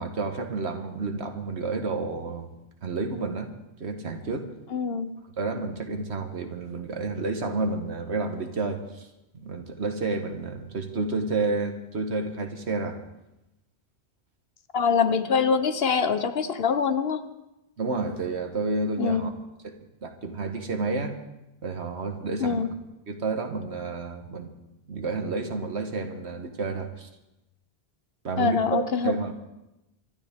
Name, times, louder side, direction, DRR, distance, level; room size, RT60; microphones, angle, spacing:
voice 1, 0.0-2.5 2.8-3.5 3.8-4.5 5.4-9.1 9.3-13.0 17.8-19.3 19.6-19.7 20.0-21.2 21.6-22.6 23.1-24.5 24.9-27.1 28.2-29.3, right 3 dB, 85° right, 6 dB, 1.7 m, -30 dB
voice 2, 4.7-5.1 14.7-17.2 19.0-19.3 22.4-22.7 28.4-29.1, left 6 dB, 65° left, 10 dB, 1.1 m, -24 dB
25.5 x 12.5 x 3.6 m, 0.93 s
omnidirectional pair, 1.1 m